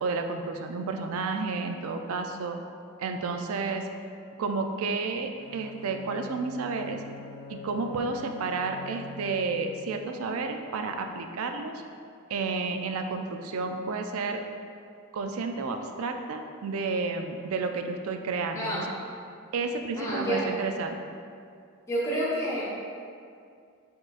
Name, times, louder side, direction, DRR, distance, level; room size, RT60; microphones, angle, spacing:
voice 1, 0.0-2.6 3.0-3.9 4.4-7.0 7.5-11.7 12.3-14.4 15.1-18.9 19.5-21.0, right 4 dB, 75° right, 5 dB, 0.4 m, -31 dB
Bowed string instrument, 5.4-10.2, left 4 dB, 60° left, 0.3 m, -44 dB
voice 2, 20.0-20.5 21.9-22.6, right 1 dB, 15° left, -8 dB, 0.9 m, -29 dB
4.5 x 4.4 x 2.4 m, 2.4 s
head